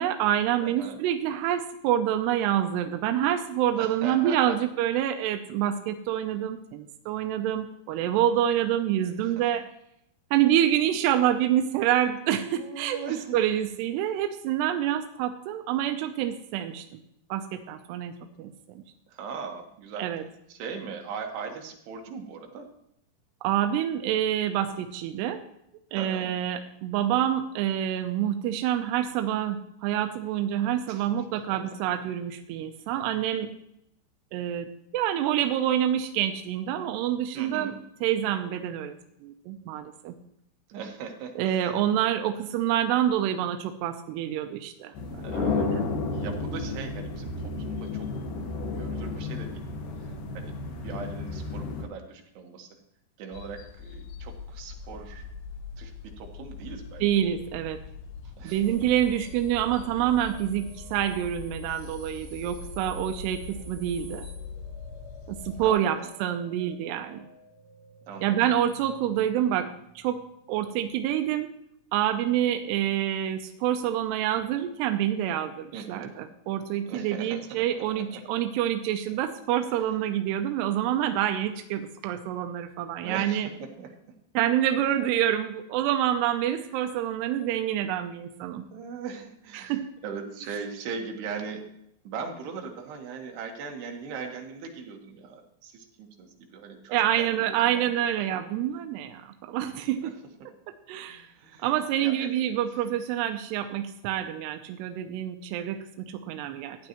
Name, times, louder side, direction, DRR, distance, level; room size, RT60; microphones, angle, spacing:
voice 1, 0.0-9.6 10.3-17.0 17.3-18.5 20.0-20.2 23.4-25.4 25.9-33.5 34.3-34.7 34.9-37.7 38.0-39.0 39.2-40.2 41.4-44.9 45.4-45.9 57.0-57.8 58.4-64.3 65.3-67.3 68.2-70.2 70.5-71.5 71.9-83.5 84.4-88.7 89.5-89.9 96.9-100.1 100.7-101.3 101.6-106.8, right 11 dB, 80° right, 6 dB, 2.4 m, -27 dB
voice 2, 0.6-1.0 3.8-4.6 9.2-9.5 12.5-13.4 19.1-20.1 20.5-22.7 25.9-26.3 30.9-31.8 37.3-37.8 40.7-41.7 45.2-48.1 48.7-49.6 50.0-52.7 53.2-55.2 55.8-57.1 58.4-58.6 65.6-66.1 68.1-68.4 75.7-76.1 76.8-78.2 79.8-79.9 83.0-83.9 88.7-91.6 92.0-97.9 98.3-98.4 101.0-101.7 102.0-102.4, right 5 dB, 65° right, 2 dB, 3.2 m, -40 dB
sound 1, 44.9-51.8, left 3 dB, 60° left, 2.4 m, -32 dB
sound 2, 53.3-65.7, left 5 dB, 85° left, 2.6 m, -42 dB
sound 3, 58.5-71.0, right 2 dB, 45° right, 1.4 m, -52 dB
15.0 x 9.8 x 3.0 m, 0.76 s
omnidirectional pair, 5.5 m